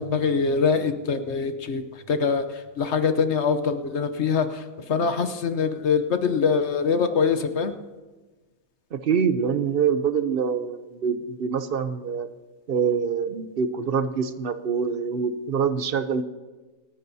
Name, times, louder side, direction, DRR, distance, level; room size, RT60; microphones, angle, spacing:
voice 1, 0.0-1.8 2.1-2.4 2.8-4.6 4.9-7.7, left 5 dB, 55° left, 9 dB, 1.0 m, -23 dB
voice 2, 8.9-12.3 12.7-16.2, right 6 dB, 55° right, 11 dB, 0.7 m, -25 dB
27.0 x 10.0 x 2.7 m, 1.2 s
omnidirectional pair, 1.5 m